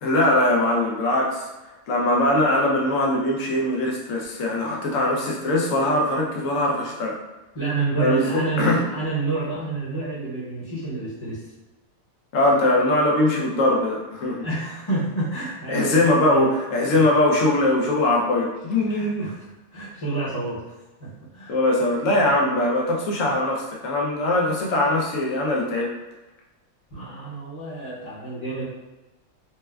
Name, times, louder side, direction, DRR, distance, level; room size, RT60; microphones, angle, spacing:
voice 1, 0.0-1.5 1.9-7.2 8.0-8.9 12.3-14.4 15.7-19.3 21.5-25.9, left 1 dB, 70° left, -2 dB, 1.0 m, -21 dB
voice 2, 7.5-11.5 14.4-16.5 16.9-17.0 18.9-19.4 19.7-20.6 21.0-21.5 22.1-22.3 26.9-28.6, right 3 dB, 25° left, -11 dB, 0.8 m, -29 dB
4.1 x 2.1 x 2.3 m, 1.1 s
omnidirectional pair, 1.4 m